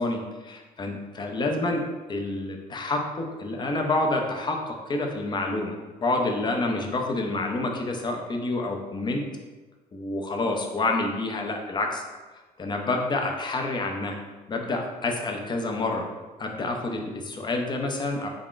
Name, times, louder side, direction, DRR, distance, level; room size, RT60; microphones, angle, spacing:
voice 1, 0.0-1.8 2.1-9.2 9.9-12.0 12.6-14.2 14.5-16.1 16.4-18.3, left 2 dB, 25° left, 2 dB, 0.5 m, -28 dB
3.5 x 2.4 x 3.7 m, 1.2 s
cardioid pair, 110°, 17 cm